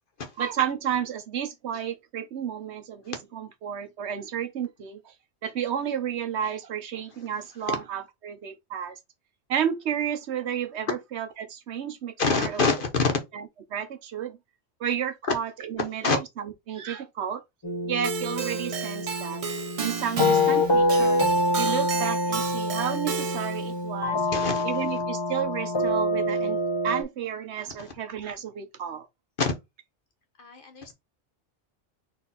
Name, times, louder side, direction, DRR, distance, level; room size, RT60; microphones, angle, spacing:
voice 1, 0.4-5.0 5.4-9.0 9.5-12.5 13.3-13.4 13.7-14.4 14.8-17.4 17.9-19.4 19.8-21.2 21.6-24.2 24.6-26.6 26.8-29.1, right 8 dB, 70° right, 1.0 m, -31 dB
voice 2, 12.2-13.1 15.3-15.4 15.8-16.2 24.3-24.7 27.8-27.9 29.4-29.5 30.4-30.9, left 4 dB, 50° left, 1.0 m, -26 dB
sound 1, 17.6-27.0, left 2 dB, 30° left, 0.5 m, -26 dB
Keyboard (musical), 18.0-23.7, right 6 dB, 55° right, 0.4 m, -33 dB
4.2 x 2.6 x 4.0 m
omnidirectional pair, 1.2 m